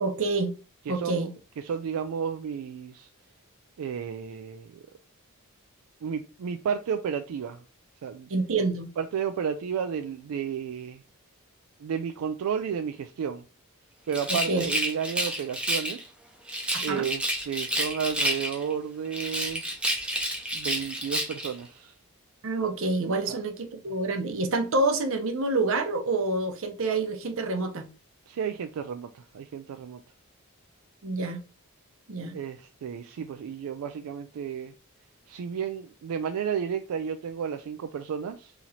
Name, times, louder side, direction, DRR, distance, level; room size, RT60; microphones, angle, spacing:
voice 1, 0.0-0.5 0.9-1.3 8.3-8.9 14.5-14.7 16.7-17.1 22.4-27.9 31.0-31.4 32.1-32.3, right 3 dB, 65° right, 0.7 m, -27 dB
voice 2, 0.9-1.3 1.6-3.1 3.8-4.9 6.0-7.6 8.0-8.3 9.0-11.0 11.8-13.4 14.1-16.1 16.8-19.6 20.5-21.9 23.3-23.4 28.3-30.0 32.3-34.7 35.3-38.5, right 7 dB, 85° right, 0.3 m, -32 dB
Rattle, 14.1-16.0 16.5-18.7 19.1-21.5, right 1 dB, 5° right, 0.7 m, -29 dB
2.9 x 2.8 x 3.9 m
head